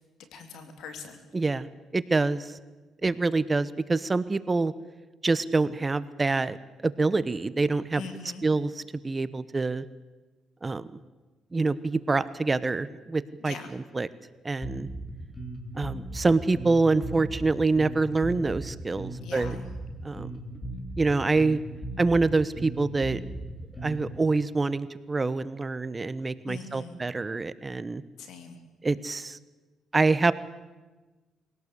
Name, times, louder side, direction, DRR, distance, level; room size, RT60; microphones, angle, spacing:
voice 1, 0.3-1.2 7.9-8.4 13.4-13.7 19.2-19.7 26.5-27.0 28.2-28.6, left 5 dB, 80° left, 7 dB, 3.3 m, -42 dB
voice 2, 1.3-1.7 1.9-2.6 3.0-4.7 5.2-6.6 6.8-8.0 8.4-9.8 10.6-10.9 11.5-13.5 13.9-14.1 14.4-14.9 15.8-19.5 20.0-20.4 21.0-21.6 22.0-23.2 23.8-28.0 28.8-29.4 29.9-30.3, right 3 dB, 25° right, 15 dB, 1.0 m, -26 dB
Bass guitar, 14.6-24.2, right 1 dB, 30° left, 4.3 m, -37 dB
23.5 x 17.5 x 8.3 m, 1.2 s
cardioid pair, 90°, 0 cm